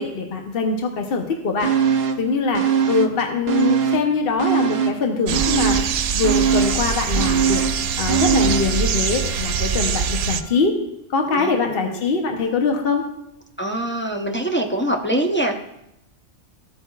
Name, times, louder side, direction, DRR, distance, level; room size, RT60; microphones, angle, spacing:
voice 1, 0.0-1.7 2.2-5.8 6.1-10.8 11.1-13.0, left 4 dB, 55° left, 3 dB, 1.0 m, -23 dB
sound 1, 1.6-2.3 2.5-4.1 4.4-8.8 9.1-9.2, right 7 dB, 60° right, 1.0 m, -21 dB
sound 2, 5.3-10.4, right 7 dB, 90° right, 0.9 m, -23 dB
Wind instrument woodwind instrument, 6.4-10.7 11.2-11.3, left 4 dB, 30° right, 1.2 m, -41 dB
voice 2, 11.3-12.0 13.6-15.6, right 1 dB, 15° left, 1 dB, 0.6 m, -24 dB
15.0 x 8.3 x 2.4 m, 0.83 s
omnidirectional pair, 1.2 m